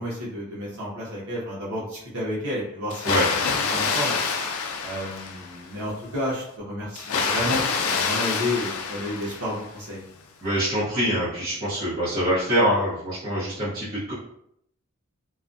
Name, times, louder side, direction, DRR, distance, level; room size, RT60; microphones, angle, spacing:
voice 1, 0.0-3.2 3.7-4.2 4.8-10.0, left 1 dB, 85° right, -7 dB, 0.8 m, -31 dB
Water, 2.9-5.7 7.0-9.8, left 5 dB, 80° left, 0.3 m, -27 dB
voice 2, 10.4-14.1, equal, 45° right, -11 dB, 0.8 m, -24 dB
2.4 x 2.1 x 2.5 m, 0.73 s
head